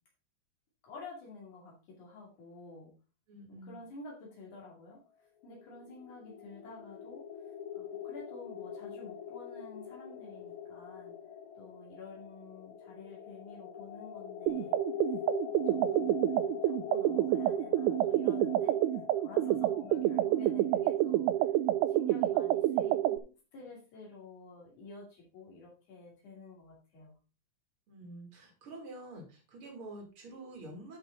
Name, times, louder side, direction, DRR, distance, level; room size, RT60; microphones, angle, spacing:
voice 1, 0.8-2.9 3.5-5.0 5.4-7.2 7.7-11.1 11.6-14.8 15.5-18.8 19.2-21.3 21.9-27.1, left 3 dB, 75° left, -2 dB, 3.9 m, -50 dB
voice 2, 3.3-3.8 19.4-19.7 27.9-31.0, right 2 dB, 45° right, 2 dB, 3.2 m, -48 dB
sound 1, 5.5-22.3, left 8 dB, 60° left, 1.6 m, -44 dB
sound 2, 14.5-23.2, right 13 dB, 85° right, 2.0 m, -28 dB
11.0 x 5.6 x 3.9 m, 0.33 s
omnidirectional pair, 3.5 m